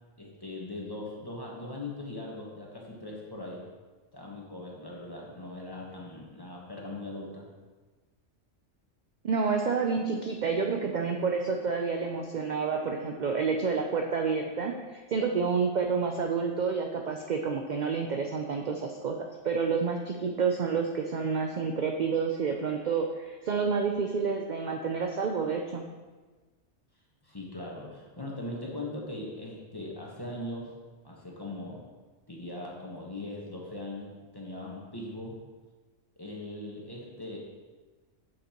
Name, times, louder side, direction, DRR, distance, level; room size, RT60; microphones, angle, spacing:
voice 1, 0.2-3.7 4.1-7.5 27.2-30.7 31.0-31.8 32.3-35.4 36.2-37.4, left 1 dB, 20° left, -3 dB, 1.2 m, -40 dB
voice 2, 9.2-19.2 19.4-25.8, right 5 dB, 65° right, 2 dB, 0.4 m, -29 dB
8.4 x 6.6 x 3.0 m, 1.3 s
omnidirectional pair, 1.3 m